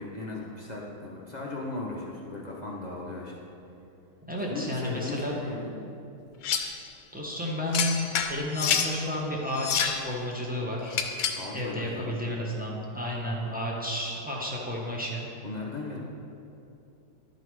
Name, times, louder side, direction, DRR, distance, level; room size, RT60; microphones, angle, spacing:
voice 1, 0.0-3.4 4.4-5.8 11.3-12.3 15.4-16.0, left 2 dB, 45° left, -4 dB, 0.5 m, -37 dB
voice 2, 4.3-5.4 7.1-11.0 11.5-15.2, left 1 dB, 10° right, -4 dB, 0.5 m, -31 dB
sound 1, 6.4-6.8 7.7-8.9 9.5-10.0 10.9-11.5, left 7 dB, 85° left, 1.3 m, -28 dB
11.5 x 4.0 x 4.7 m, 2.8 s
omnidirectional pair, 1.9 m